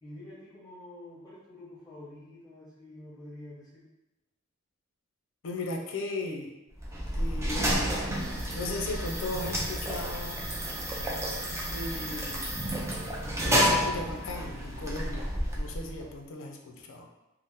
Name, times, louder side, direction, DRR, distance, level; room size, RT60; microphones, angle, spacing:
voice 1, 0.0-3.8, left 1 dB, 20° left, -8 dB, 0.8 m, -47 dB
voice 2, 5.4-6.5 7.1-7.9 8.5-10.4 11.7-12.5 13.4-15.3 15.5-17.1, left 2 dB, 60° left, 2 dB, 0.4 m, -36 dB
sound 1, 6.8-16.1, equal, 15° right, 0.4 m, -30 dB
2.7 x 2.0 x 3.4 m, 0.97 s
head